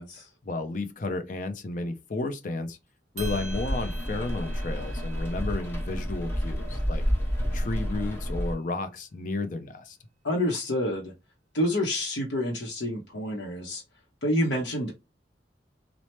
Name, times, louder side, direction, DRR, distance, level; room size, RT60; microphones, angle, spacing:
voice 1, 0.4-2.8 3.1-7.0 7.5-10.0, left 2 dB, 45° left, 0.5 m, -32 dB
Rain, 3.2-8.5, equal, 15° left, 0.9 m, -30 dB
sound 1, 3.2-7.6, right 2 dB, 40° right, 0.7 m, -47 dB
voice 2, 10.2-11.1 11.5-13.8 14.2-14.9, left 1 dB, 85° left, 0.7 m, -28 dB
3.1 x 2.0 x 2.9 m
head